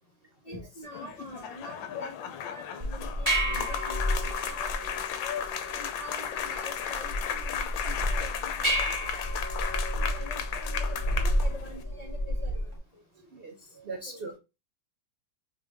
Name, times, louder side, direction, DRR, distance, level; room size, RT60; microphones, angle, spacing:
voice 1, 0.5-4.7 5.2-5.3 5.7-9.3 9.9-12.7 14.1-14.2, left 1 dB, 50° left, 0 dB, 0.4 m, -46 dB
sound 1, 0.8-11.8, left 8 dB, 90° left, 1.4 m, -35 dB
sound 2, 2.8-12.8, equal, 15° right, 1.4 m, -31 dB
voice 2, 13.2-14.4, right 3 dB, 70° right, 2 dB, 0.5 m, -41 dB
3.8 x 3.8 x 3.4 m, 0.27 s
omnidirectional pair, 2.1 m